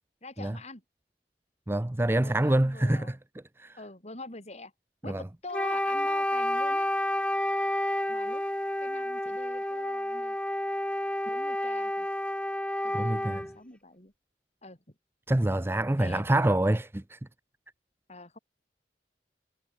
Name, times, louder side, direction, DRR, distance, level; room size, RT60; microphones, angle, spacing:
voice 1, 0.2-0.8 2.2-3.2 3.8-4.7 5.0-6.9 8.1-8.4 8.8-10.4 11.2-12.1 12.8-14.1 14.6-14.9 16.0-16.2 18.1-18.4, left 3 dB, 40° left, 6.6 m, -44 dB
voice 2, 1.7-3.2 3.6-3.7 5.1-5.2 12.9-13.4 15.3-17.2, right 1 dB, 15° right, 0.5 m, -26 dB
Wind instrument woodwind instrument, 5.5-13.5, left 1 dB, 5° left, 2.2 m, -30 dB
head